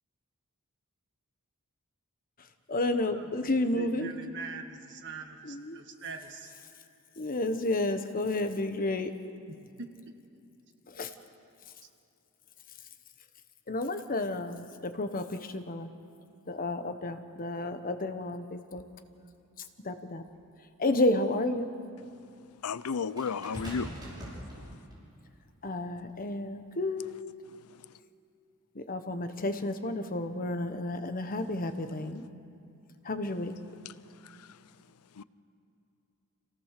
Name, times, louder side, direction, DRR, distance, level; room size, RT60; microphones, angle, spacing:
voice 1, 2.7-4.1 5.4-5.8 7.2-9.1 11.0-11.1 13.7-15.9 16.5-18.8 19.8-20.2 20.8-21.7 25.6-27.2 28.7-32.2 33.0-33.5, left 2 dB, 40° left, 8 dB, 1.1 m, -31 dB
voice 2, 3.7-6.5 9.5-9.9, right 4 dB, 55° right, 5 dB, 1.7 m, -43 dB
sound 1, 20.3-20.4 23.2-25.1 26.0-26.2, equal, 20° right, 5.8 m, -42 dB
voice 3, 22.6-24.0 34.2-34.5 35.2-35.3, left 5 dB, 85° left, 17 dB, 0.6 m, -33 dB
27.0 x 17.0 x 6.7 m, 2.6 s
head